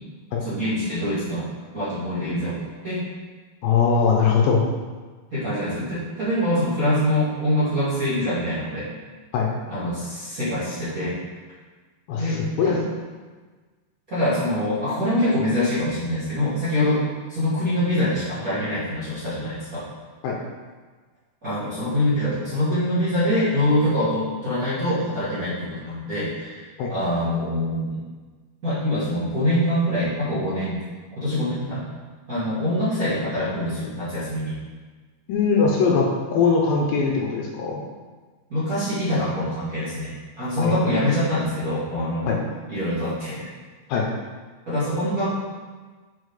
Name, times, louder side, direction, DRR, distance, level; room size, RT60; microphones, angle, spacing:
voice 1, 0.4-1.5 1.7-3.0 5.3-8.8 9.7-11.1 12.2-12.4 12.6-12.8 14.1-17.0 17.3-19.8 21.4-28.0 28.6-30.8 31.1-31.9 32.3-34.5 38.5-42.4 42.7-43.5 44.7-45.3, left 1 dB, 35° right, -13 dB, 1.5 m, -24 dB
voice 2, 3.6-4.6 9.3-9.5 12.1-12.8 20.2-20.4 26.8-26.9 35.3-37.8 40.6-40.9 42.3-42.4 43.9-44.1, left 5 dB, 75° left, -1 dB, 2.3 m, -21 dB
6.4 x 4.9 x 4.9 m, 1.4 s
omnidirectional pair, 4.4 m